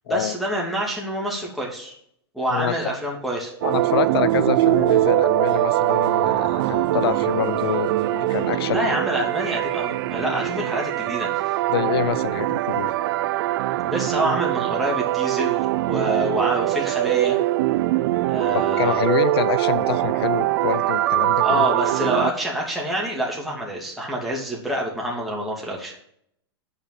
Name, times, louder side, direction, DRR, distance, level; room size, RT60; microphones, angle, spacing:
voice 1, 0.1-1.9 2.3-3.5 8.7-11.3 13.9-15.6 15.9-17.4 18.3-19.0 21.4-25.9, right 1 dB, ahead, -4 dB, 2.8 m, -26 dB
voice 2, 2.5-3.0 3.6-8.9 11.7-12.9 18.5-21.7, left 11 dB, 65° left, 14 dB, 0.9 m, -26 dB
sound 1, 3.6-22.3, right 16 dB, 60° right, 0.4 m, -22 dB
sound 2, 3.7-12.2 12.5-13.1, right 7 dB, 30° right, 2.0 m, -37 dB
8.7 x 5.7 x 7.5 m, 0.69 s
hypercardioid pair, 115°, 14 cm